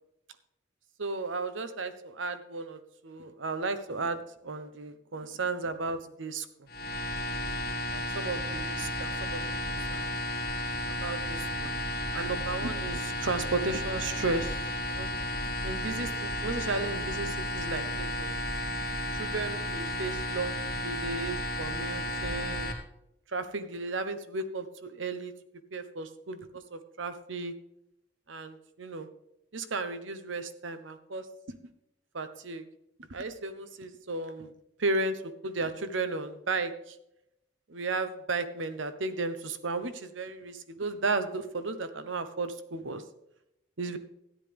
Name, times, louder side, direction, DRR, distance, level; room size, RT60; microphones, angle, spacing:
voice 1, 1.0-6.5 7.9-10.1 11.0-11.7 12.1-14.6 14.9-15.1 15.6-16.1 16.4-18.3 19.2-20.5 20.8-22.7 23.3-25.3 25.7-27.5 28.3-29.1 29.5-31.6 32.1-32.6 33.0-34.5 34.8-37.0 37.7-43.0 43.8-44.0, right 3 dB, 85° right, 11 dB, 0.9 m, -34 dB
sound 1, 6.7-22.7, left 1 dB, 50° left, 1.9 m, -33 dB
13.5 x 9.9 x 3.4 m, 0.83 s
head